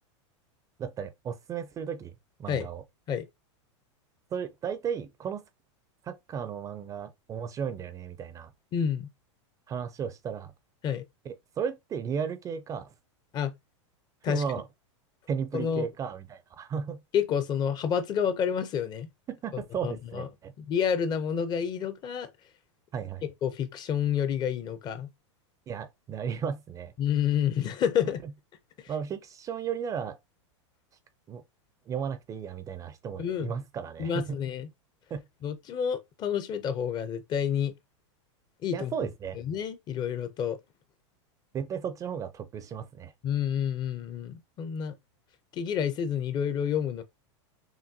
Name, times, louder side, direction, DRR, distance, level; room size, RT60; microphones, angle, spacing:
voice 1, 0.8-2.1 2.4-2.8 4.3-5.4 6.0-8.5 9.7-10.5 11.2-12.9 14.2-14.7 15.3-17.0 19.3-20.5 22.9-23.2 25.7-26.9 28.2-28.3 28.9-30.2 31.3-31.4 31.9-34.4 35.1-35.2 38.7-39.4 41.5-43.1, right 7 dB, 20° right, 0.4 m, -34 dB
voice 2, 8.7-9.1 10.8-11.0 13.3-13.5 14.2-14.4 15.5-15.9 17.1-19.1 19.5-20.3 20.6-22.3 23.4-25.1 27.0-28.2 33.2-33.5 34.0-34.7 35.4-37.7 38.6-38.9 39.4-40.6 43.2-44.9 45.5-47.0, left 8 dB, 25° left, 0.5 m, -29 dB
5.9 x 2.2 x 2.7 m
supercardioid pair, 135°, 16 cm